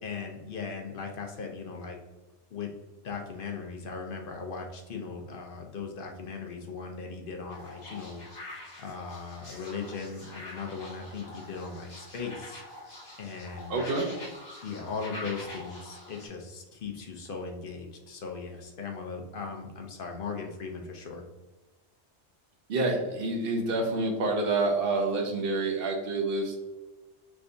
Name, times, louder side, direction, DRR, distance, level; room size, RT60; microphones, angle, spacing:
voice 1, 0.0-2.0 2.5-2.7 3.0-12.6 13.2-13.8 14.6-21.2, left 5 dB, 55° left, 2 dB, 0.8 m, -38 dB
sound 1, 7.5-16.3, left 1 dB, 40° left, 1.1 m, -45 dB
voice 2, 13.7-14.1 22.7-26.6, right 2 dB, 60° right, 2 dB, 0.9 m, -28 dB
3.6 x 3.3 x 2.6 m, 1.1 s
omnidirectional pair, 1.2 m